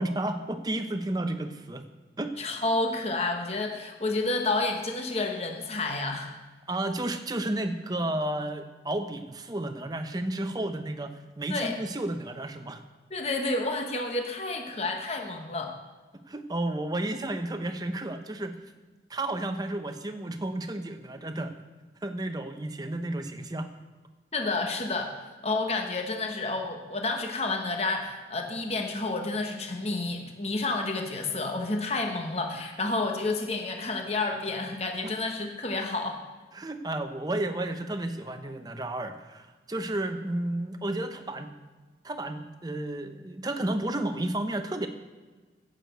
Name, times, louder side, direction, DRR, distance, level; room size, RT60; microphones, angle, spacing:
voice 1, 0.0-1.8 2.2-2.4 6.7-12.8 16.3-18.6 19.1-21.5 22.0-23.7 35.0-35.1 36.5-41.5 42.0-44.9, right 1 dB, 20° right, 7 dB, 0.7 m, -32 dB
voice 2, 2.4-6.3 11.5-11.7 13.1-15.7 24.3-25.1 25.4-36.2, left 2 dB, 35° left, 3 dB, 1.2 m, -30 dB
9.8 x 6.5 x 7.9 m, 1.3 s
head